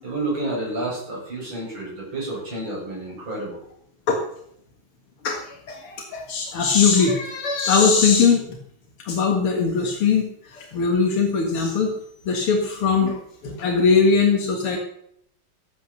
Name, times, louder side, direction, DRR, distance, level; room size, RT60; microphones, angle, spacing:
voice 1, 0.0-3.6, right 2 dB, 60° right, -4 dB, 8.4 m, -30 dB
voice 2, 5.2-8.6 9.0-11.9 12.3-13.2 13.4-14.8, left 5 dB, 80° left, 2 dB, 2.6 m, -20 dB
14.0 x 9.0 x 6.8 m, 0.69 s
omnidirectional pair, 2.4 m